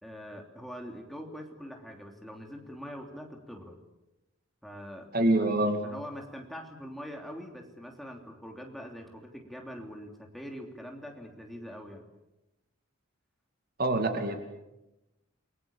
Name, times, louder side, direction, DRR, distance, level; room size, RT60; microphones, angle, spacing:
voice 1, 0.0-3.8 4.6-5.1 5.8-12.1, equal, ahead, 2 dB, 3.2 m, -43 dB
voice 2, 5.1-5.8 13.8-14.4, right 1 dB, 45° right, 6 dB, 2.5 m, -25 dB
29.5 x 22.0 x 7.2 m, 0.94 s
head